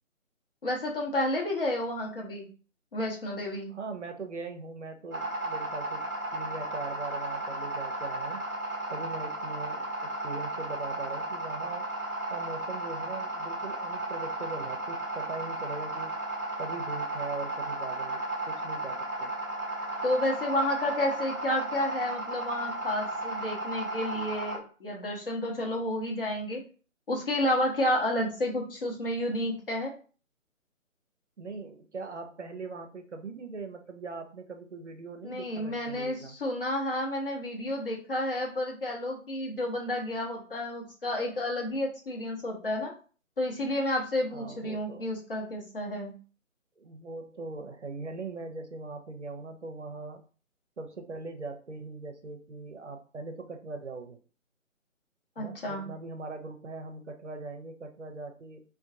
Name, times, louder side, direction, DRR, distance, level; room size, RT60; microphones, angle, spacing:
voice 1, 0.6-2.5 2.9-3.7 20.0-26.6 27.1-29.9 35.2-42.9 43.4-46.1 55.4-55.9, left 1 dB, 40° left, -1 dB, 1.0 m, -31 dB
voice 2, 3.7-6.0 6.3-8.4 8.9-11.9 12.3-16.2 16.6-19.3 31.4-36.3 44.3-45.1 46.8-50.2 50.8-54.2 55.4-58.6, right 3 dB, 60° right, 6 dB, 0.6 m, -41 dB
sound 1, 5.1-24.6, right 2 dB, 15° right, 0.7 m, -34 dB
3.5 x 2.3 x 2.6 m, 0.38 s
figure-of-eight pair, 150°, 41 cm